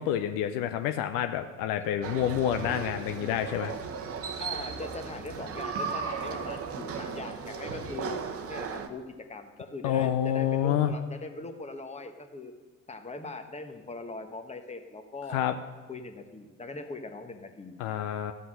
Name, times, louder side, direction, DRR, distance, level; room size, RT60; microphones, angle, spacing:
voice 1, 0.0-3.7 9.8-10.9 15.3-15.5 17.8-18.3, left 10 dB, 60° left, 7 dB, 0.6 m, -28 dB
sound 1, 2.0-8.9, right 5 dB, 40° right, 1.0 m, -36 dB
voice 2, 4.4-8.2 8.5-12.5 12.9-15.4 15.9-17.7, left 3 dB, 15° left, 6 dB, 1.2 m, -41 dB
13.5 x 5.6 x 6.3 m, 1.3 s
figure-of-eight pair, 55°, 37 cm